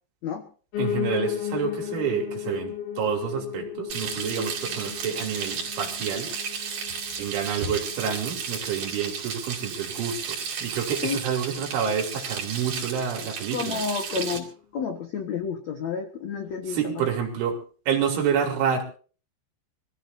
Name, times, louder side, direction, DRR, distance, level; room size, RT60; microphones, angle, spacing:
Piano, 0.7-9.8 10.2-11.4 11.7-11.8 12.0-12.1 12.3-12.4 13.0-13.1, left 11 dB, 60° left, 3.7 m, -35 dB
voice 1, 0.8-6.3 7.2-13.8 16.7-17.6 17.9-18.8, right 7 dB, 75° right, 3 dB, 5.4 m, -28 dB
Frying (food), 3.9-14.4, right 6 dB, 55° right, 4.8 m, -33 dB
voice 2, 13.5-14.5 14.7-16.9, left 6 dB, 75° left, 5 dB, 1.6 m, -30 dB
25.5 x 16.0 x 2.7 m, 0.39 s
omnidirectional pair, 5.5 m